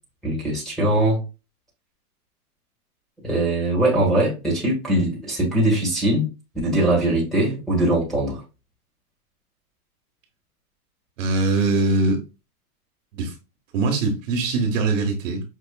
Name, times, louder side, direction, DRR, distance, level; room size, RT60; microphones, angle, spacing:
voice 1, 0.2-1.2 3.2-6.3 6.6-8.4, right 1 dB, ahead, 1.4 m, -21 dB
voice 2, 11.2-12.2 13.1-13.3 13.7-15.4, right 3 dB, 60° right, 1.2 m, -22 dB
5.5 x 2.4 x 2.2 m
hypercardioid pair, 135°, 45 cm